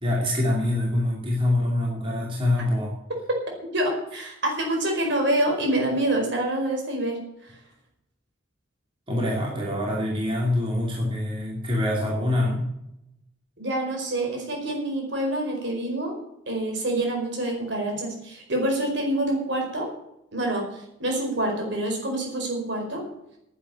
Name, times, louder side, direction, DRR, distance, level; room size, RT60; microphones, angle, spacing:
voice 1, 0.0-2.9 9.1-12.6, left 1 dB, 25° right, -3 dB, 2.7 m, -25 dB
voice 2, 3.7-7.2 13.6-16.1 16.5-19.9 20.3-23.0, right 1 dB, 60° right, 1 dB, 4.9 m, -26 dB
11.0 x 9.0 x 8.4 m, 0.81 s
head